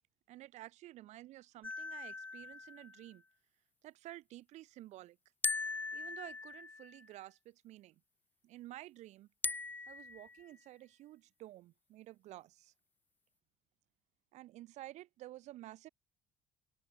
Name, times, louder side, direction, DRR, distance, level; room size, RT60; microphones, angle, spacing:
voice 1, 0.3-3.2 3.8-5.2 5.9-8.0 8.4-9.3 9.9-12.7 14.3-15.9, right 15 dB, 70° right, 3.7 m, -52 dB
Toy Xylophone (metallic), 1.6-3.1 5.4-7.1 9.4-10.5, left 3 dB, 15° left, 0.7 m, -40 dB
cardioid pair, 120°, 12 cm